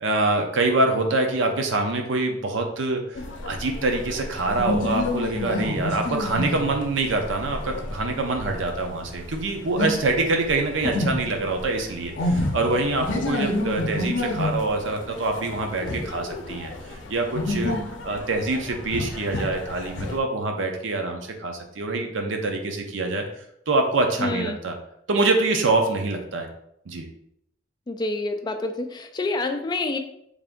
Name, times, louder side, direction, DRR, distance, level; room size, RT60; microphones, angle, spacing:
voice 1, 0.0-17.7 18.0-23.2 23.7-24.8 25.1-26.5 26.9-27.0, right 2 dB, 85° right, 3 dB, 0.6 m, -25 dB
sound 1, 3.1-20.2, left 2 dB, 80° left, 0.5 m, -30 dB
voice 2, 24.2-24.6 27.9-30.0, left 2 dB, 25° left, 6 dB, 0.3 m, -27 dB
3.4 x 2.5 x 3.6 m, 0.75 s
head